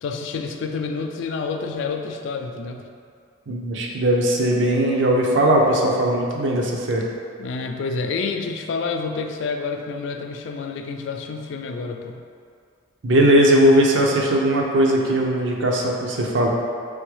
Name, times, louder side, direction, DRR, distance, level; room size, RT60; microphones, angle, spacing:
voice 1, 0.0-2.8 7.4-12.2, left 4 dB, 65° left, 5 dB, 0.3 m, -28 dB
voice 2, 3.5-7.0 13.0-16.5, right 1 dB, 65° right, -1 dB, 0.5 m, -19 dB
3.7 x 3.5 x 3.2 m, 2.3 s
head